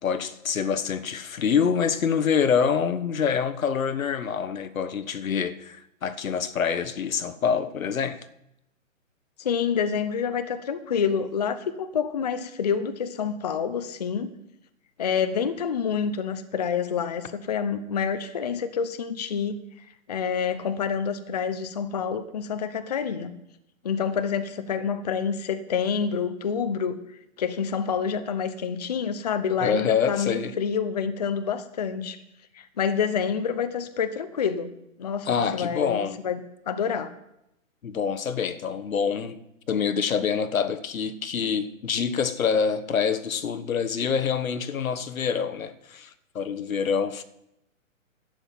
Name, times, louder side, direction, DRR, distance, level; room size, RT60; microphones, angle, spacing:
voice 1, 0.0-8.2 29.6-30.6 35.3-36.2 37.8-39.4 39.7-47.2, left 6 dB, 80° left, 1.3 m, -26 dB
voice 2, 9.4-14.3 15.0-19.6 20.1-23.4 23.8-27.0 27.4-32.2 32.5-34.7 35.0-36.4 36.7-37.1, left 7 dB, 30° left, 0.6 m, -27 dB
12.0 x 7.8 x 9.1 m
hypercardioid pair, 170°, 40 cm